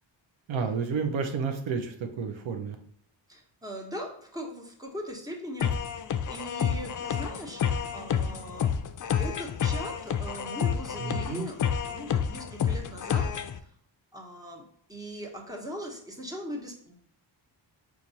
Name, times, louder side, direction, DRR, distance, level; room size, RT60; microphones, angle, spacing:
voice 1, 0.5-2.8 11.0-11.5, right 5 dB, 85° right, 5 dB, 0.7 m, -31 dB
voice 2, 3.3-6.0 6.3-8.7 9.2-13.3 13.6-13.7 14.1-17.0, equal, 10° right, 1 dB, 1.0 m, -40 dB
sound 1, 5.6-13.6, left 8 dB, 45° left, 0.4 m, -29 dB
4.6 x 2.4 x 4.0 m, 0.66 s
cardioid pair, 75°, 45 cm